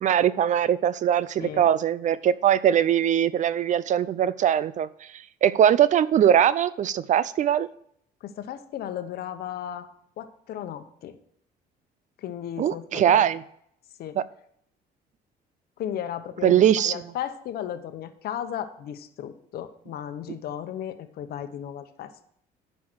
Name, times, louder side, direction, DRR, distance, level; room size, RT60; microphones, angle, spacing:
voice 1, 0.0-7.7 12.6-13.4 14.2-14.3 16.4-17.0, right 10 dB, 45° right, 0.4 m, -21 dB
voice 2, 8.2-9.9 10.2-11.2 12.2-13.2 14.0-14.2 15.8-22.2, left 10 dB, 65° left, 1.0 m, -35 dB
9.5 x 5.5 x 6.2 m
cardioid pair, 110°, 17 cm